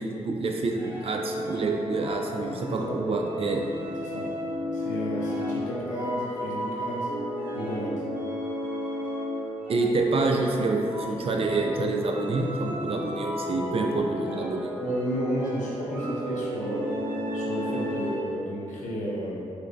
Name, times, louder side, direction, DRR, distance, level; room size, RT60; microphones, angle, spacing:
voice 1, 0.0-3.6 9.7-14.7, right 3 dB, 50° right, 2 dB, 0.5 m, -27 dB
sound 1, 0.7-18.4, equal, 15° right, 0.8 m, -33 dB
voice 2, 4.7-7.1 7.5-8.0 14.8-17.0 17.3-19.3, equal, 85° left, -5 dB, 0.8 m, -32 dB
4.4 x 3.1 x 2.6 m, 2.7 s
cardioid pair, 65°, 12 cm